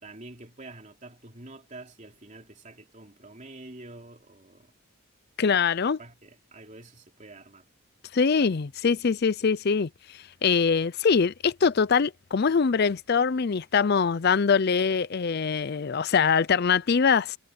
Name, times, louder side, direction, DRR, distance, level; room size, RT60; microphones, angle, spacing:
voice 1, 0.0-4.7 5.8-7.7, right 2 dB, 35° right, 3.5 m, -47 dB
voice 2, 5.4-6.0 8.1-9.9 10.4-17.4, left 5 dB, 50° left, 0.5 m, -23 dB
head